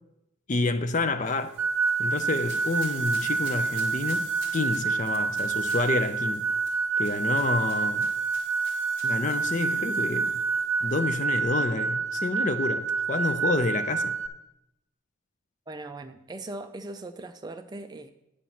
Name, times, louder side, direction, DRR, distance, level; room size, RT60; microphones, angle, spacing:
voice 1, 0.5-1.5 2.0-4.3 4.5-6.4 7.0-8.1 9.0-10.3 10.8-14.1, left 3 dB, 35° left, 0.5 m, -28 dB
sound 1, 1.2-11.2, left 2 dB, 60° left, 2.6 m, -48 dB
sound 2, 1.6-14.3, right 4 dB, 85° right, 0.6 m, -27 dB
voice 2, 15.7-18.1, right 2 dB, 20° right, 0.3 m, -39 dB
9.4 x 5.1 x 5.8 m
head